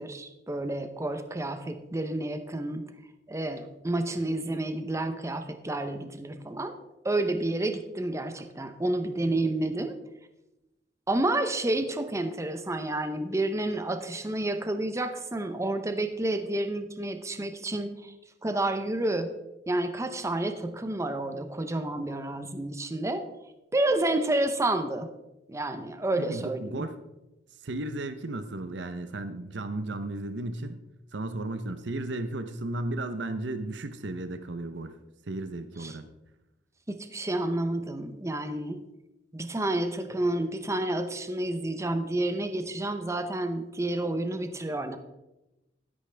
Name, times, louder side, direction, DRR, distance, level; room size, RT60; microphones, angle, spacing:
voice 1, 0.0-2.8 3.3-6.8 7.0-9.9 11.1-18.1 18.4-19.3 19.7-23.2 23.7-25.1 25.5-26.9 35.8-36.0 36.9-38.8 39.3-45.0, right 1 dB, 15° right, 8 dB, 0.7 m, -30 dB
voice 2, 26.2-27.0 27.6-30.8 31.1-35.0 35.3-36.1, right 2 dB, 70° right, 10 dB, 0.7 m, -34 dB
12.0 x 10.5 x 3.4 m, 0.97 s
head